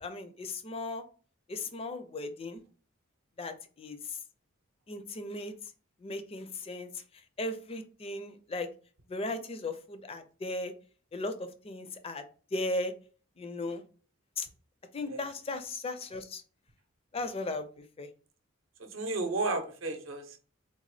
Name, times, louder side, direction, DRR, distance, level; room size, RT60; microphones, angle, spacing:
voice 1, 0.0-1.0 1.5-2.6 3.4-4.0 4.9-5.5 6.0-6.9 7.4-8.7 9.1-10.7 11.1-12.2 12.5-12.9 13.4-13.8 14.4-14.5 14.9-16.4 17.1-17.6 18.0-18.1, left 2 dB, 30° left, 0.4 m, -36 dB
voice 2, 18.8-20.4, right 3 dB, 70° right, 0.7 m, -33 dB
3.8 x 2.1 x 3.2 m
head